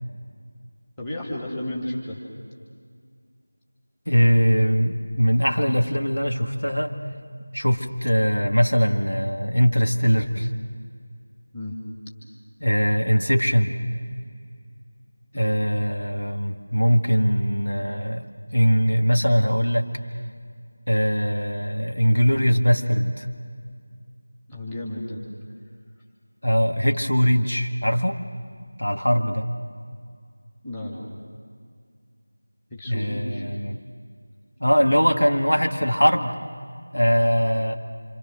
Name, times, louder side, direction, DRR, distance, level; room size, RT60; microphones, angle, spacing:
voice 1, 1.0-2.2 11.5-11.8 15.3-15.6 24.5-25.2 30.6-31.1 32.7-33.4, left 1 dB, 10° left, -4 dB, 2.6 m, -32 dB
voice 2, 4.1-6.9 7.5-10.5 12.6-13.8 15.4-18.3 18.5-19.9 20.9-23.3 26.4-28.2 28.8-29.5 32.9-33.8 34.6-36.4 36.9-37.8, equal, 80° left, 3 dB, 1.9 m, -21 dB
27.0 x 27.0 x 6.3 m, 2.1 s
figure-of-eight pair, 170°, 0 cm